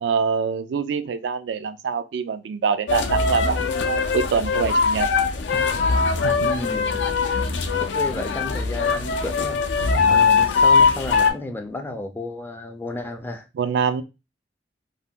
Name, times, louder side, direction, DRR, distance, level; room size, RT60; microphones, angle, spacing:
voice 1, 0.0-5.1 6.2-6.5 13.6-14.0, right 6 dB, 75° right, 0.3 m, -25 dB
sound 1, 2.9-11.3, left 4 dB, 80° left, 0.4 m, -21 dB
voice 2, 5.5-5.9 6.4-7.4 7.9-9.6 10.1-13.5, left 2 dB, 10° left, 0.3 m, -33 dB
2.7 x 2.1 x 3.4 m
head